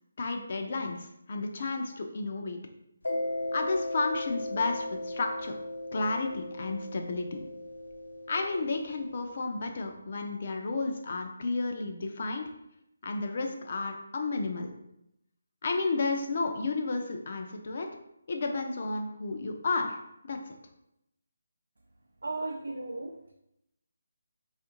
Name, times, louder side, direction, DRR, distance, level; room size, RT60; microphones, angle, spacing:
voice 1, 0.2-2.6 3.5-5.5 5.9-7.5 8.3-12.4 13.0-14.7 15.6-17.9 18.3-20.4, left 3 dB, 45° left, 3 dB, 0.4 m, -32 dB
Mallet percussion, 3.0-9.4, left 1 dB, 85° left, 0.7 m, -37 dB
voice 2, 22.2-23.3, right 2 dB, 85° right, 1 dB, 0.4 m, -36 dB
3.5 x 2.4 x 2.9 m, 0.80 s
figure-of-eight pair, 165°, 0 cm